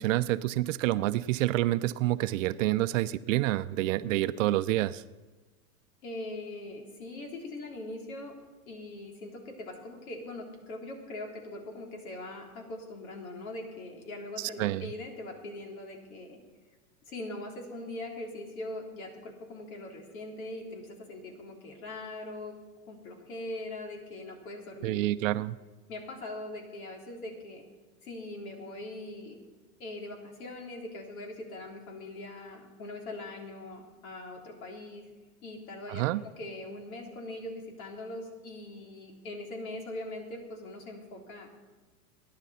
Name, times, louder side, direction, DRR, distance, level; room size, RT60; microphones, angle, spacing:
voice 1, 0.0-5.0 14.4-14.9 24.8-25.6 35.9-36.2, right 15 dB, 60° right, 14 dB, 0.6 m, -28 dB
voice 2, 6.0-8.4 8.7-16.4 17.1-22.6 22.9-25.0 25.9-27.6 28.0-29.4 29.8-35.1 35.4-41.6, left 2 dB, 70° left, 2 dB, 3.6 m, -41 dB
22.0 x 10.5 x 4.2 m, 1.3 s
hypercardioid pair, 115°, 44 cm